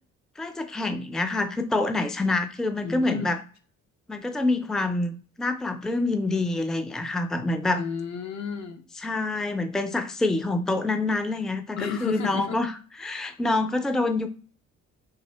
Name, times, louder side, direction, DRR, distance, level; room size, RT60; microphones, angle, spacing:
voice 1, 0.4-3.4 4.1-7.8 9.0-12.7 13.0-14.3, left 2 dB, ahead, 8 dB, 0.4 m, -26 dB
voice 2, 2.8-3.3 7.7-8.8 11.8-12.6, left 6 dB, 60° left, 7 dB, 0.8 m, -32 dB
3.7 x 2.7 x 3.2 m, 0.40 s
cardioid pair, 90°, 30 cm